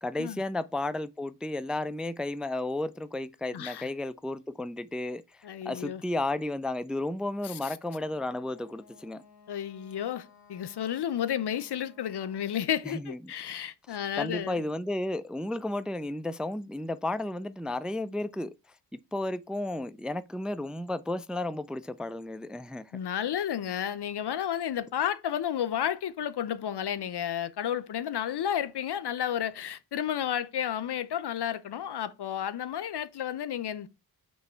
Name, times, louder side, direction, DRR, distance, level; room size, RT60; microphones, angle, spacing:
voice 1, 0.0-5.2 5.7-9.2 12.8-13.2 13.9-18.5 19.1-22.9, left 2 dB, ahead, 0.3 m, -33 dB
voice 2, 3.5-3.9 5.4-6.0 7.4-7.8 9.5-14.6 22.9-33.9, left 10 dB, 75° left, 0.6 m, -32 dB
Wind instrument woodwind instrument, 7.8-12.7, left 6 dB, 60° left, 1.6 m, -58 dB
5.4 x 3.1 x 5.5 m
cardioid pair, 60°, 40 cm